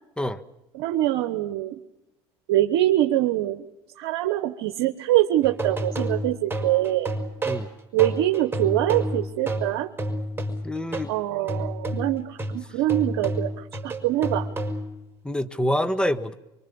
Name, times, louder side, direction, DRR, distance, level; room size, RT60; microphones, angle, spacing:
voice 1, 0.7-1.8 2.5-3.6 4.0-7.1 7.9-9.9 11.1-14.5, right 14 dB, 80° right, 8 dB, 1.2 m, -24 dB
sound 1, 5.4-11.1 11.5-15.0, right 1 dB, 15° right, 5.2 m, -30 dB
voice 2, 10.6-11.1 15.2-16.3, equal, 5° left, 11 dB, 1.5 m, -26 dB
25.0 x 24.0 x 7.1 m, 0.94 s
supercardioid pair, 85°, 14 cm